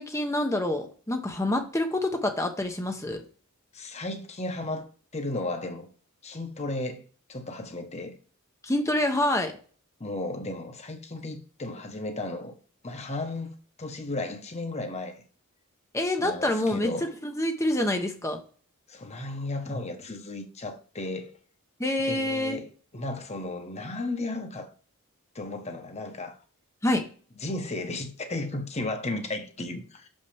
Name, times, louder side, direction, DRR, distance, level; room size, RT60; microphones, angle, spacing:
voice 1, 0.0-3.3 8.6-9.6 15.9-18.4 21.8-22.6 26.8-27.0, left 1 dB, 15° left, 0.8 m, -27 dB
voice 2, 3.7-4.9 5.1-5.9 6.2-7.0 7.3-8.1 10.0-12.5 12.8-15.2 16.2-17.1 18.9-21.3 22.1-22.7 22.9-24.7 25.3-26.4 27.4-30.1, left 2 dB, 30° left, 1.2 m, -34 dB
6.7 x 5.5 x 3.4 m
head